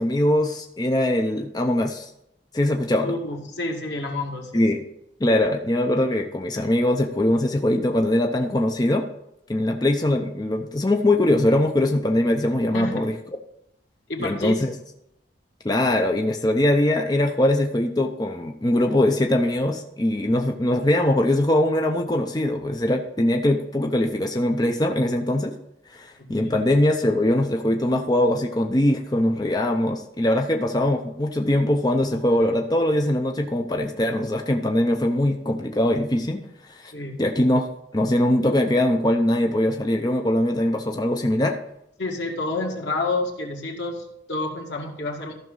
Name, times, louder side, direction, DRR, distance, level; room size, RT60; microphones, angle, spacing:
voice 1, 0.0-2.1 2.5-3.1 4.5-4.8 5.2-9.0 9.5-13.1 14.2-14.7 15.6-25.5 25.9-36.9 37.2-37.7 37.9-41.6, left 1 dB, 25° left, 3 dB, 0.6 m, -22 dB
voice 2, 3.0-4.7 12.7-13.1 14.1-14.6 26.2-26.6 36.9-37.2 42.0-45.3, left 2 dB, 85° left, 0 dB, 2.1 m, -29 dB
14.0 x 6.0 x 3.9 m, 0.81 s
head